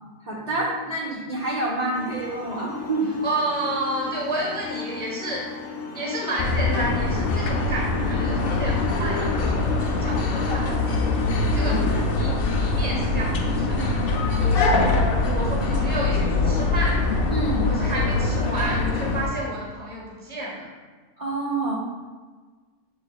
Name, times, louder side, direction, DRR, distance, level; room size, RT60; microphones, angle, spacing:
voice 1, 0.2-3.2 11.6-11.8 13.8-14.0 17.3-17.7 21.2-21.7, right 2 dB, 60° right, -4 dB, 0.4 m, -27 dB
sound 1, 1.9-12.1, left 4 dB, 65° left, 0.9 m, -36 dB
voice 2, 3.2-5.5 5.9-11.8 12.1-13.8 15.2-17.0 17.7-20.6, right 1 dB, 15° left, -4 dB, 0.4 m, -31 dB
sound 2, 6.4-19.3, left 3 dB, 85° left, 0.5 m, -23 dB
6.9 x 3.4 x 2.3 m, 1.4 s
omnidirectional pair, 1.6 m